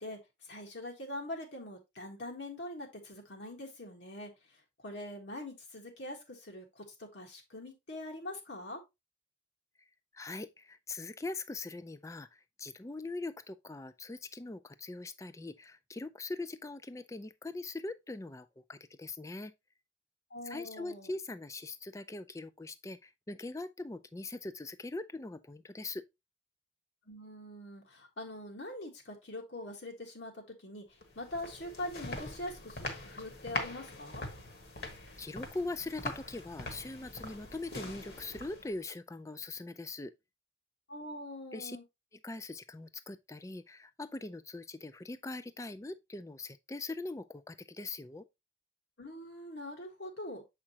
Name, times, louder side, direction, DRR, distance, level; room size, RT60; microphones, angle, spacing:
voice 1, 0.0-4.3 4.8-8.8 20.3-21.1 27.1-30.8 31.1-34.2 40.9-41.8 49.0-50.4, left 1 dB, 75° left, 1.6 m, -43 dB
voice 2, 10.1-12.3 12.6-19.5 20.4-26.0 35.2-40.1 41.5-41.8 42.1-48.3, left 2 dB, 15° left, 0.4 m, -41 dB
sound 1, 31.0-38.8, left 2 dB, 55° left, 1.3 m, -43 dB
7.3 x 5.0 x 2.8 m
head